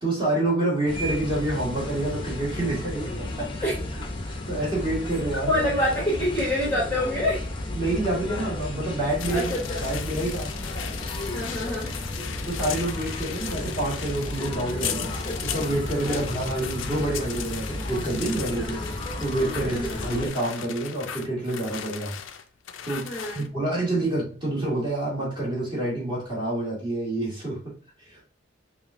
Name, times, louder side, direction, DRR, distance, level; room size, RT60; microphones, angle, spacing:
voice 1, 0.0-3.7 4.2-5.6 7.7-9.5 9.8-10.5 12.4-15.1 15.4-18.8 19.2-22.1 22.8-23.1 23.3-27.6 28.1-28.2, right 1 dB, 25° right, -6 dB, 1.8 m, -28 dB
sound 1, 0.9-20.3, left 1 dB, 25° left, 0.6 m, -33 dB
voice 2, 5.5-7.4 9.3-9.9 11.3-11.9 16.0-16.3 18.6-19.0 19.6-20.1 23.0-23.5, left 1 dB, 10° left, -5 dB, 1.0 m, -27 dB
sound 2, 9.2-23.5, left 9 dB, 80° left, 0.4 m, -37 dB
5.1 x 2.4 x 2.5 m, 0.39 s
head